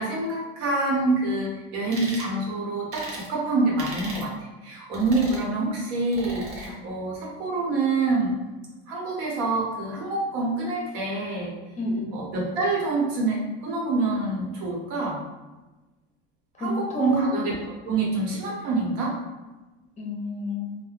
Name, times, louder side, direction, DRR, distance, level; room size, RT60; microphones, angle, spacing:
voice 1, 0.0-4.3 4.6-8.3 8.9-11.6 12.1-15.2 16.6-17.5 17.8-19.2, right 3 dB, 80° right, -3 dB, 1.0 m, -26 dB
sound 1, 1.9-2.3 2.9-3.3 3.8-4.3 4.9-5.5 6.1-6.7, right 1 dB, 45° right, 0.9 m, -37 dB
voice 2, 11.8-12.2 16.6-17.3 20.0-20.8, equal, 20° left, -2 dB, 0.7 m, -30 dB
2.4 x 2.1 x 3.2 m, 1.2 s
supercardioid pair, 115°, 32 cm